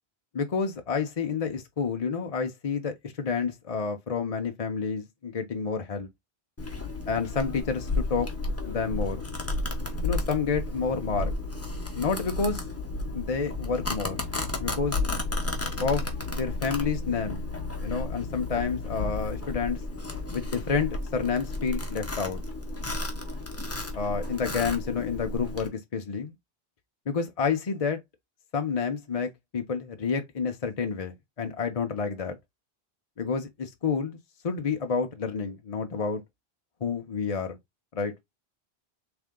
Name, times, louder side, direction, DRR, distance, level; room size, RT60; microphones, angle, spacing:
voice 1, 0.3-6.1 7.1-8.3 8.7-9.2 10.0-11.3 11.9-12.6 13.1-14.2 14.6-15.0 15.8-16.1 16.3-17.4 17.8-19.8 20.3-22.4 23.9-26.3 27.1-28.0 28.5-32.4 33.2-34.2 34.4-36.2 36.8-37.6 37.9-38.1, left 5 dB, 40° left, 0.6 m, -29 dB
Domestic sounds home sounds, 6.6-25.7, left 2 dB, 15° left, 0.8 m, -32 dB
3.7 x 3.4 x 3.6 m
omnidirectional pair, 1.1 m